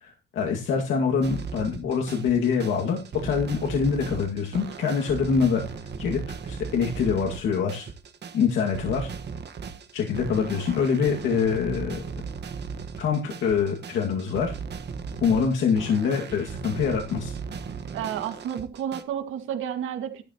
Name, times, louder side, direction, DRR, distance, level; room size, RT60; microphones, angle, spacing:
voice 1, 0.0-5.6 6.0-7.9 8.3-9.1 9.9-12.0 13.0-14.6 15.2-17.3, left 6 dB, 75° left, 0 dB, 2.3 m, -25 dB
sound 1, 1.2-19.0, right 5 dB, 60° right, 1.6 m, -37 dB
voice 2, 17.9-20.2, right 9 dB, 85° right, 6 dB, 2.2 m, -31 dB
13.5 x 12.5 x 3.0 m, 0.30 s
cardioid pair, 90°, 20 cm